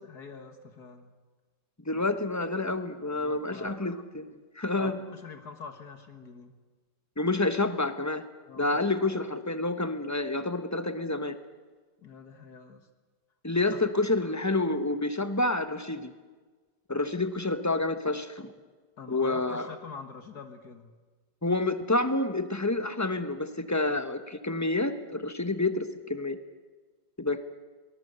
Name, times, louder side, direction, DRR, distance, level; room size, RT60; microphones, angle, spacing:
voice 1, 0.0-1.1 2.0-2.1 3.2-3.8 4.7-6.5 8.5-8.8 12.0-12.9 13.7-13.8 19.0-20.9, left 5 dB, 65° left, 7 dB, 2.0 m, -45 dB
voice 2, 1.9-5.0 7.2-8.2 8.6-11.4 13.4-16.1 16.9-18.5 19.1-19.7 21.4-26.4 27.2-27.4, left 2 dB, 10° left, 10 dB, 0.9 m, -28 dB
23.5 x 19.5 x 8.1 m, 1.4 s
omnidirectional pair, 1.9 m